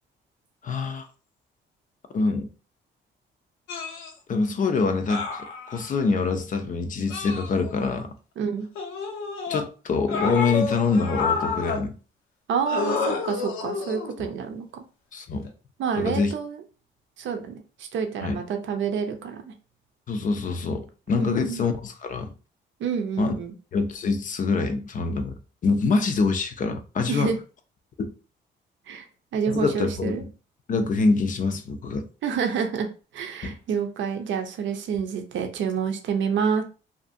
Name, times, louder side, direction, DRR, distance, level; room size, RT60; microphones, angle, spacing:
voice 1, 0.6-1.1 2.1-2.5 4.3-8.1 9.5-11.9 14.2-14.3 15.1-15.5 16.0-16.3 18.2-18.4 20.1-22.3 23.2-23.4 23.7-25.4 25.6-27.3 28.0-28.1 29.5-30.3 30.7-32.0 33.4-33.5, left 4 dB, 40° left, 0.5 m, -25 dB
sound 1, 3.7-4.1 5.1-6.0 7.1-8.0 8.8-9.6 10.1-11.8 12.7-14.2 15.3-15.5, left 5 dB, 85° left, 0.7 m, -29 dB
voice 2, 8.4-8.7 12.5-14.8 15.8-16.6 17.2-19.5 21.2-21.6 22.8-23.5 27.1-27.4 28.9-29.1 29.3-30.2 32.2-32.9 33.1-36.6, right 6 dB, 70° right, 0.6 m, -28 dB
2.6 x 2.5 x 2.5 m
cardioid pair, 90°, 20 cm